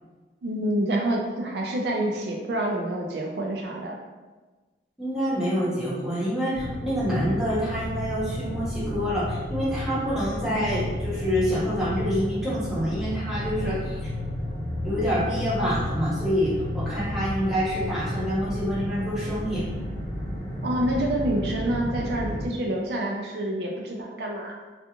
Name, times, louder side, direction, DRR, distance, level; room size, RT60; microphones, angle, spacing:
voice 1, 0.4-4.0 20.6-24.6, right 1 dB, 70° right, 0 dB, 0.4 m, -27 dB
voice 2, 5.0-14.1 14.8-19.7, equal, 5° right, -9 dB, 0.7 m, -27 dB
sound 1, 6.5-22.5, left 1 dB, 60° left, 0.8 m, -32 dB
2.4 x 2.4 x 2.7 m, 1.3 s
head